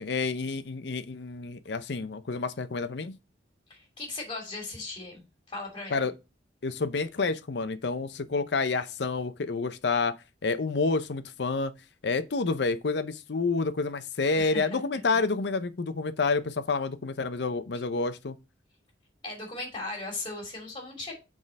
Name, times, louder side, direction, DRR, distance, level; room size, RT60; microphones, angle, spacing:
voice 1, 0.0-3.1 5.9-6.1 6.6-10.2 10.4-11.7 12.0-18.4, left 4 dB, 70° left, 0.6 m, -29 dB
voice 2, 3.7-6.0 14.3-14.8 15.1-15.2 19.2-21.2, left 2 dB, 30° left, 2.8 m, -38 dB
6.3 x 3.7 x 5.1 m
head